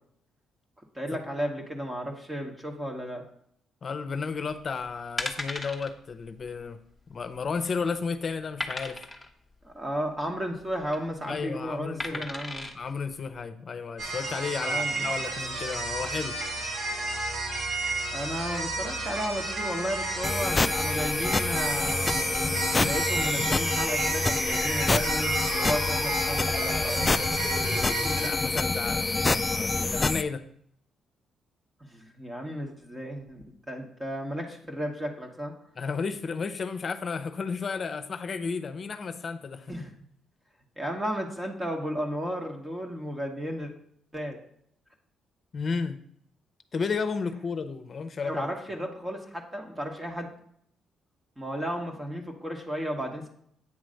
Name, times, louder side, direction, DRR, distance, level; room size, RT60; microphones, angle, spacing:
voice 1, 0.9-3.2 9.6-12.7 14.6-15.1 18.1-27.0 31.9-35.5 39.7-39.9 40.8-43.7 44.1-44.4 48.2-50.3 51.4-53.3, equal, 20° right, 1 dB, 1.2 m, -34 dB
voice 2, 3.8-6.8 7.1-9.0 11.3-12.2 12.7-16.4 28.1-30.4 35.8-39.7 45.5-46.0 46.7-48.5, left 5 dB, 45° left, 10 dB, 0.7 m, -33 dB
sound 1, 4.5-4.7 5.2-5.9 6.2-6.4 6.7-6.8 7.3-7.8 8.6-9.3 10.6-11.0 12.0-12.7 13.3-13.4, left 2 dB, 5° left, 0.9 m, -35 dB
sound 2, 14.0-28.3, right 2 dB, 65° right, 2.1 m, -32 dB
sound 3, 20.2-30.2, left 3 dB, 25° left, 0.3 m, -27 dB
8.6 x 3.1 x 6.4 m, 0.67 s
cardioid pair, 90°, 0 cm